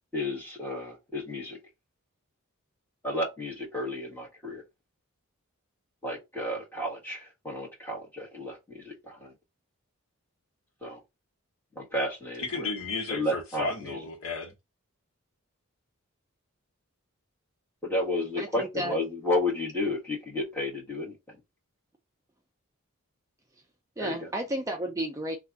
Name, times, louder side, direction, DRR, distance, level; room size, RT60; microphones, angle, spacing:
voice 1, 0.1-1.6 3.0-4.6 6.0-8.9 10.8-11.0 11.8-12.7 13.1-13.7 17.8-21.1 24.0-24.2, left 1 dB, 10° left, 1.5 m, -32 dB
voice 2, 12.4-14.5, left 3 dB, 65° left, 1.0 m, -33 dB
voice 3, 18.4-19.0 24.0-25.4, right 1 dB, 15° right, 0.4 m, -32 dB
3.3 x 2.4 x 3.8 m
head